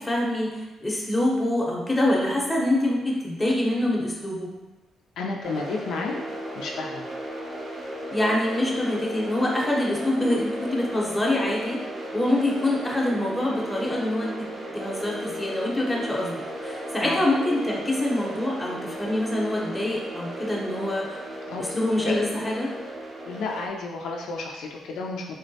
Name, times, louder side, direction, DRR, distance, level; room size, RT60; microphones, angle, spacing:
voice 1, 0.0-4.5 8.1-11.8 12.1-14.5 14.7-16.4 16.6-21.2 21.6-22.7, left 1 dB, 10° left, -3 dB, 0.7 m, -25 dB
voice 2, 5.2-6.2 6.6-7.1 17.0-17.2 21.5-21.6 22.0-22.2 23.3-25.2, left 3 dB, 80° left, 0 dB, 0.3 m, -31 dB
sound 1, 5.4-23.7, right 1 dB, 35° right, 0.6 m, -35 dB
3.6 x 2.1 x 2.7 m, 1.1 s
cardioid pair, 80°, 0 cm